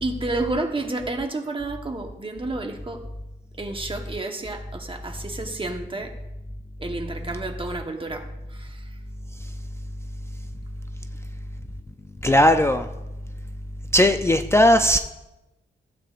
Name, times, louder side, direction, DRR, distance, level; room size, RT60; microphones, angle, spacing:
voice 1, 0.0-3.0 3.6-6.1 6.8-8.9, right 2 dB, 25° right, 4 dB, 1.2 m, -30 dB
voice 2, 12.2-12.9 13.9-15.0, left 1 dB, 15° left, 7 dB, 0.4 m, -17 dB
15.5 x 8.6 x 2.5 m, 0.96 s
wide cardioid pair, 100°, 19 cm